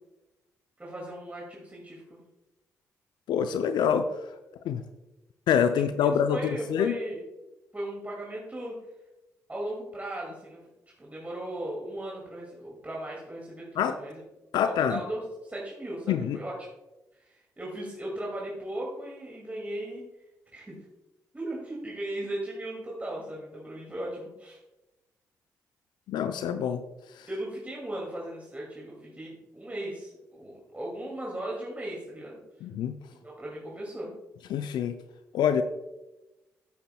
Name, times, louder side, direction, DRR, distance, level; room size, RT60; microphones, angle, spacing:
voice 1, 0.8-2.2 6.0-7.2 7.7-8.8 9.5-10.6 11.0-14.2 14.6-16.5 17.2-20.0 20.5-20.8 21.3-24.6 27.3-32.4 33.2-34.1, right 1 dB, 20° right, -3 dB, 2.3 m, -37 dB
voice 2, 3.3-4.1 4.7-4.8 5.5-6.9 13.8-13.9 14.5-15.0 16.1-16.4 26.1-26.8 27.2-27.3 32.6-33.0 34.5-35.0 35.3-35.6, left 8 dB, 70° left, 9 dB, 0.4 m, -26 dB
10.0 x 9.1 x 2.2 m, 1.0 s
hypercardioid pair, 40°, 8 cm